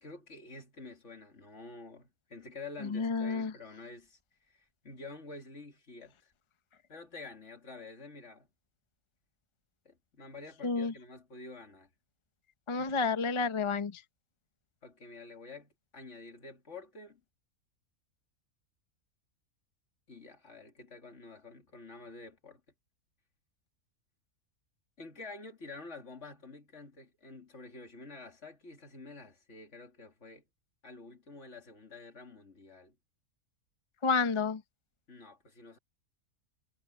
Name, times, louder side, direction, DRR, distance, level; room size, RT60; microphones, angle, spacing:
voice 1, 0.0-4.2 4.5-6.3 6.9-8.5 9.8-11.9 12.7-13.0 14.8-17.2 20.1-22.6 25.0-30.4 30.8-33.0 35.1-35.8, left 3 dB, 55° left, 2.8 m, -49 dB
voice 2, 2.8-3.5 10.6-10.9 12.7-14.0 34.0-34.6, left 4 dB, 30° left, 0.6 m, -30 dB
omnidirectional pair, 1.5 m